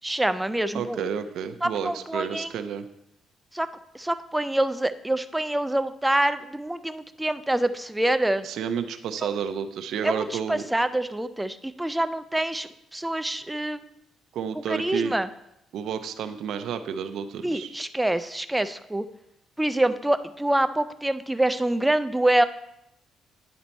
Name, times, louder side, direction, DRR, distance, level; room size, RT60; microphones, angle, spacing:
voice 1, 0.0-1.0 1.6-2.5 3.5-3.7 3.9-8.5 9.2-9.3 10.0-13.8 14.7-15.3 17.4-19.1 19.6-22.4, right 1 dB, 5° right, 12 dB, 0.3 m, -26 dB
voice 2, 0.7-2.9 8.4-10.6 14.3-15.1 15.7-17.7, right 7 dB, 70° right, 10 dB, 0.5 m, -31 dB
10.0 x 4.3 x 4.1 m, 0.83 s
cardioid pair, 135°, 0 cm